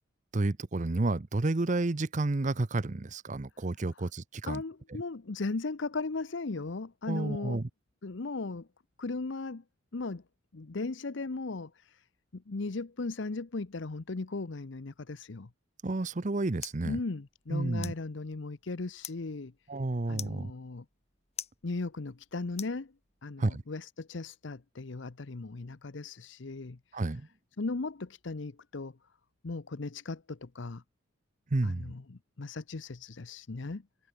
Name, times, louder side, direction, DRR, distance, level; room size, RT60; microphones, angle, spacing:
voice 1, 0.3-4.6 7.1-7.7 15.8-17.0 17.5-17.9 19.7-20.5 23.4-23.6 26.9-27.3 31.5-31.9, right 2 dB, 40° right, 0.7 m, -30 dB
voice 2, 4.5-7.6 8.0-8.7 9.0-9.6 9.9-10.2 10.5-12.1 12.3-15.5 16.8-19.5 20.1-20.8 21.6-22.9 23.2-27.0 27.6-29.0 29.4-30.8 31.6-33.8, left 3 dB, 65° left, 0.8 m, -37 dB
sound 1, 15.8-23.4, left 10 dB, 35° left, 6.0 m, -49 dB
head